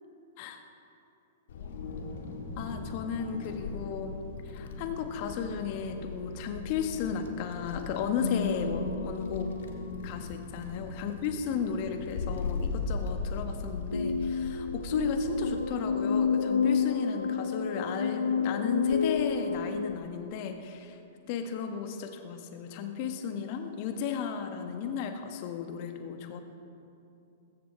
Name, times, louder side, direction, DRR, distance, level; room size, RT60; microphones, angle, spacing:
Wind, 1.5-15.7, left 4 dB, 60° left, 1.8 m, -39 dB
voice 1, 2.6-9.5 10.0-21.0 21.3-26.4, left 6 dB, 45° left, 6 dB, 1.4 m, -34 dB
sound 1, 8.2-11.4 13.9-19.9, left 5 dB, 85° left, 0.8 m, -30 dB
20.0 x 15.5 x 3.4 m, 2.8 s
figure-of-eight pair, 105°, 0 cm